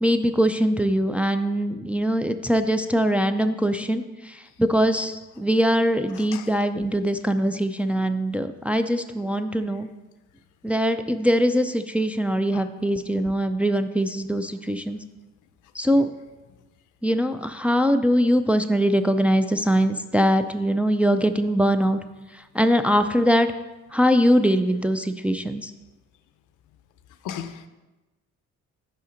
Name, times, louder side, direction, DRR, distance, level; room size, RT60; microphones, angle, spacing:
voice 1, 0.0-9.9 10.6-15.0 15.8-16.1 17.0-22.0 22.5-23.5 23.9-25.7, equal, 5° right, 0.4 m, -22 dB
voice 2, 27.2-27.7, left 9 dB, 85° left, 0.6 m, -34 dB
6.5 x 5.5 x 5.1 m
cardioid pair, 90°, 30 cm